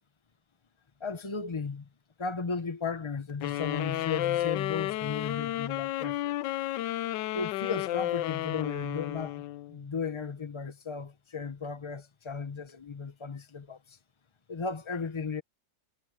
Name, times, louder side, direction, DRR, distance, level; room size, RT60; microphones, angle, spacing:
voice 1, 1.0-1.9 2.2-6.3 7.3-9.4 9.7-14.0 14.5-15.4, left 5 dB, 50° left, 0.3 m, -35 dB
sound 1, 3.4-9.8, left 14 dB, 80° left, 1.3 m, -32 dB
omnidirectional pair, 1.9 m